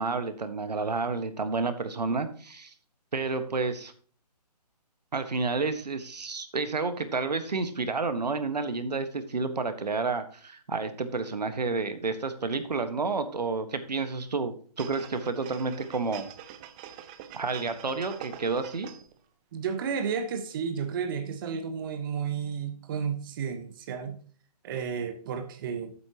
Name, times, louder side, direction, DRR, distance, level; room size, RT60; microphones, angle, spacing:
voice 1, 0.0-2.7 3.1-3.9 5.1-16.3 17.3-18.9, right 4 dB, 75° right, 10 dB, 1.5 m, -30 dB
sound 1, 14.8-19.2 19.6-19.7, right 10 dB, 10° right, 0.4 m, -45 dB
voice 2, 19.5-24.2 24.6-25.9, right 6 dB, 30° right, 7 dB, 1.2 m, -32 dB
12.0 x 8.4 x 3.0 m, 0.43 s
figure-of-eight pair, 145°, 21 cm